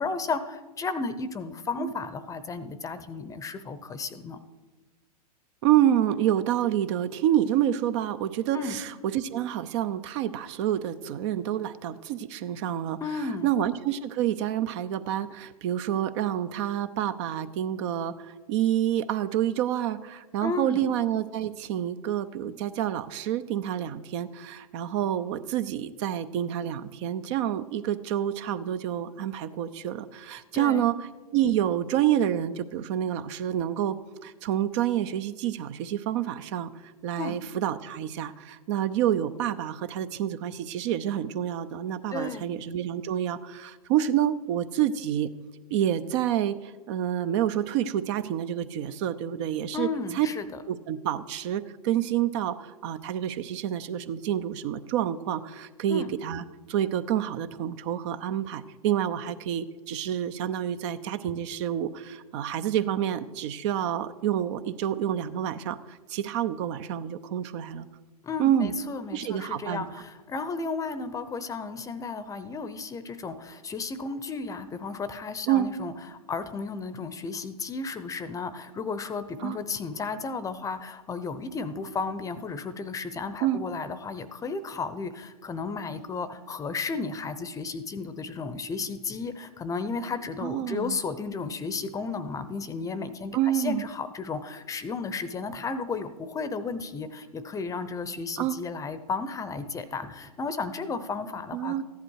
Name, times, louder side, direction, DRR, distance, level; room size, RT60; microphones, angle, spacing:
voice 1, 0.0-4.4 8.5-8.8 13.0-13.5 20.4-20.9 30.5-30.9 37.2-37.4 42.1-42.5 49.7-50.5 55.9-56.1 68.2-101.8, left 4 dB, 15° left, 13 dB, 0.7 m, -33 dB
voice 2, 5.6-34.0 34.2-36.7 37.0-45.3 45.7-50.3 50.7-67.9 68.4-68.7 69.1-69.9 75.5-75.7 79.4-79.6 83.4-83.6 90.4-91.0 93.3-93.8 98.4-98.6 101.5-101.8, right 11 dB, 45° right, 12 dB, 0.7 m, -28 dB
14.5 x 10.5 x 4.7 m, 1.2 s
hypercardioid pair, 115°, 20 cm